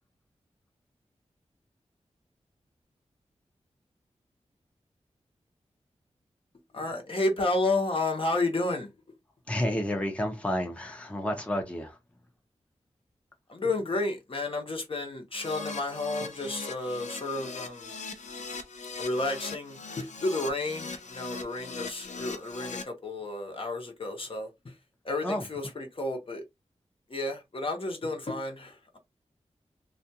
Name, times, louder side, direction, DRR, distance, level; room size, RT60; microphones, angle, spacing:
voice 1, 6.7-8.9 13.5-17.9 19.0-24.5 25.0-26.4 27.1-29.0, left 2 dB, 50° left, 0.9 m, -31 dB
voice 2, 9.5-12.0 25.2-25.5, left 1 dB, 10° left, 0.6 m, -30 dB
Keyboard (musical), 15.3-22.8, left 4 dB, 85° left, 0.5 m, -40 dB
2.4 x 2.3 x 2.7 m
wide cardioid pair, 70°, 12 cm